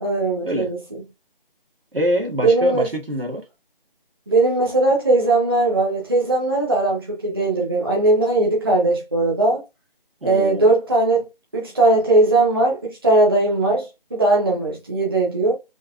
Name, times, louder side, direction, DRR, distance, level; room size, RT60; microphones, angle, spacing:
voice 1, 0.0-0.8 2.4-2.9 4.3-9.6 10.2-11.3 11.5-15.5, right 2 dB, 25° right, 0.9 m, -19 dB
voice 2, 1.9-3.4 10.2-10.7, equal, 75° right, 1.9 m, -24 dB
5.6 x 2.7 x 2.4 m
figure-of-eight pair, 160°, 29 cm